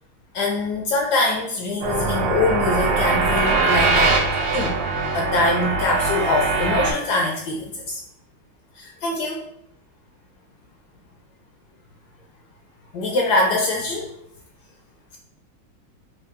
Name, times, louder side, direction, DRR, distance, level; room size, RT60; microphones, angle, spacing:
voice 1, 0.3-4.2 4.5-4.8 5.1-8.0 8.8-9.4 12.9-14.1, left 2 dB, 75° left, 0 dB, 1.0 m, -23 dB
sound 1, 1.8-6.9, right 3 dB, 75° right, 1.4 m, -21 dB
3.7 x 2.3 x 3.5 m, 0.73 s
omnidirectional pair, 2.2 m